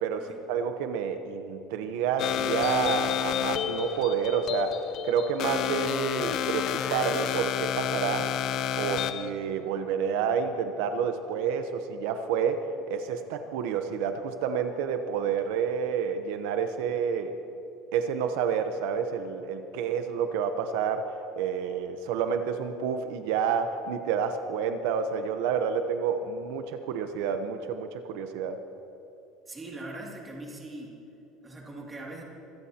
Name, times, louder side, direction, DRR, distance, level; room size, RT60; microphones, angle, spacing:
voice 1, 0.0-8.3 8.7-17.4 17.9-28.6, right 7 dB, 80° right, 7 dB, 0.9 m, -29 dB
sound 1, 2.2-9.3, left 10 dB, 45° left, 0.6 m, -30 dB
voice 2, 29.5-30.9 31.4-32.2, right 2 dB, 15° right, -3 dB, 2.5 m, -41 dB
25.5 x 16.5 x 2.9 m, 2.9 s
cardioid pair, 170°, 0 cm